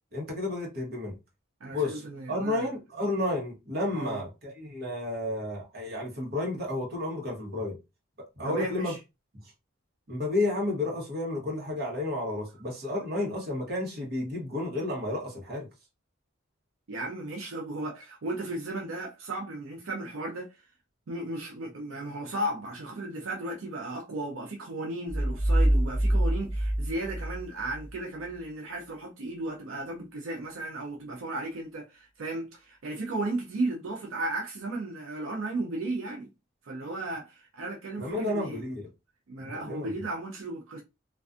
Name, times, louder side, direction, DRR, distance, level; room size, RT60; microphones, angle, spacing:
voice 1, 0.1-1.2 1.7-2.0 2.3-7.8 8.2-8.9 9.3-9.5 10.1-15.7 38.0-38.9 39.4-39.9, left 2 dB, 50° right, 0.9 m, -31 dB
voice 2, 1.6-2.7 3.9-4.2 8.4-9.0 16.9-20.6 21.1-36.3 36.6-38.7 39.3-40.8, right 2 dB, 85° right, 0.5 m, -35 dB
sound 1, 25.1-27.9, right 1 dB, 10° left, 0.4 m, -25 dB
2.5 x 2.3 x 2.4 m
head